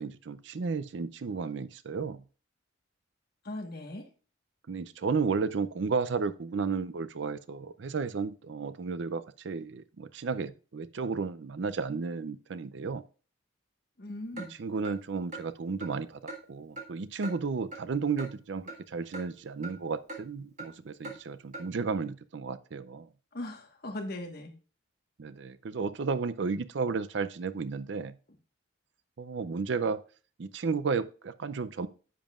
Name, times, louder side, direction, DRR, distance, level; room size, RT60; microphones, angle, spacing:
voice 1, 0.0-2.2 4.7-13.0 14.4-16.2 16.5-23.1 25.2-28.1 29.2-30.0 30.4-31.9, right 4 dB, 60° right, 0.5 m, -33 dB
voice 2, 3.4-4.0 14.0-14.5 23.3-24.5, left 1 dB, 50° left, 1.4 m, -39 dB
Clock, 14.4-14.5 14.8-15.0 15.3-15.5 15.8-15.9 16.3-16.4 16.8-16.9 17.2-17.4 17.7-17.8 18.2-18.3 18.7-18.8 19.1-19.2 19.6-19.8 20.1-20.2 20.6-20.7 21.0-21.2 21.5-21.7, right 2 dB, 35° right, 1.6 m, -40 dB
10.0 x 7.3 x 2.4 m
head